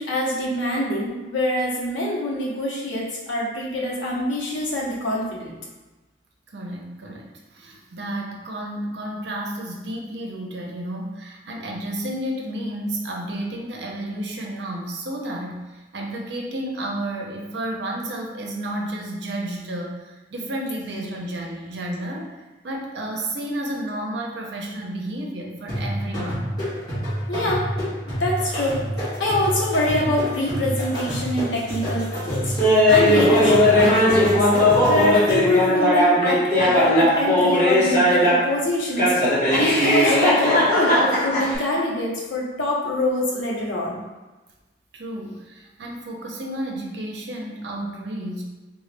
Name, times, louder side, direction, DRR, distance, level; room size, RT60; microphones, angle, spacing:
voice 1, 0.0-5.5 27.3-27.7 28.1-28.8 29.2-34.5 34.8-44.0, left 1 dB, 90° left, -3 dB, 0.9 m, -25 dB
voice 2, 6.5-22.3 22.6-26.4 44.9-48.4, right 1 dB, 70° right, 0 dB, 0.6 m, -31 dB
sound 1, 25.7-35.6, equal, 20° left, 1.4 m, -28 dB
Laughter, 32.6-38.5 39.0-41.6, left 1 dB, 40° left, 1.2 m, -18 dB
3.8 x 2.3 x 3.3 m, 1.2 s
head